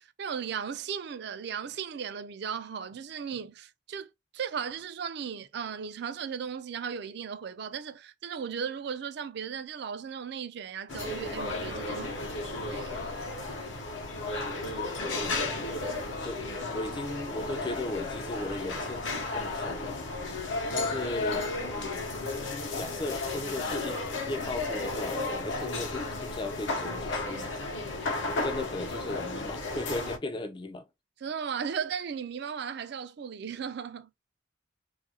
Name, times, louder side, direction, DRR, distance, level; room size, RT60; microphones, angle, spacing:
voice 1, 0.0-13.1 16.8-16.9 31.2-34.1, right 7 dB, 55° right, 0.4 m, -36 dB
sound 1, 10.9-30.2, left 2 dB, 70° left, 0.7 m, -33 dB
voice 2, 14.7-15.6 16.2-16.4 16.7-20.0 20.7-22.1 22.7-27.6 28.3-30.8, left 2 dB, 25° left, 0.4 m, -37 dB
2.7 x 2.4 x 2.7 m
head